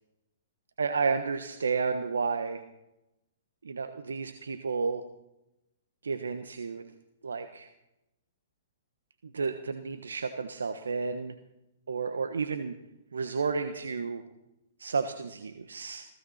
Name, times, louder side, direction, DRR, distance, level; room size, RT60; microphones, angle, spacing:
voice 1, 0.8-2.6 3.6-5.1 6.0-6.8 7.2-7.7 9.3-11.4 11.9-12.7 13.1-14.2 14.8-16.1, right 5 dB, 85° right, 8 dB, 1.2 m, -31 dB
20.5 x 16.5 x 4.3 m, 0.89 s
hypercardioid pair, 125°, 0 cm